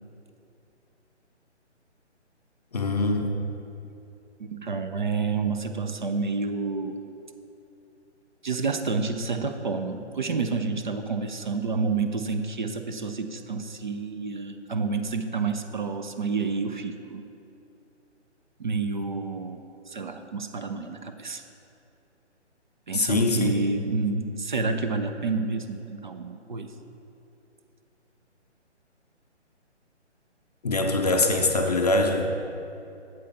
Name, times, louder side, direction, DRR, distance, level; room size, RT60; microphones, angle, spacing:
voice 1, 2.7-3.4 22.9-23.6 30.6-32.5, left 2 dB, 35° left, 4 dB, 0.5 m, -23 dB
voice 2, 4.4-7.0 8.4-17.3 18.6-19.6 19.9-21.4 22.9-26.7, right 4 dB, 45° right, 7 dB, 0.5 m, -29 dB
8.1 x 7.8 x 4.0 m, 2.8 s
figure-of-eight pair, 145°, 35 cm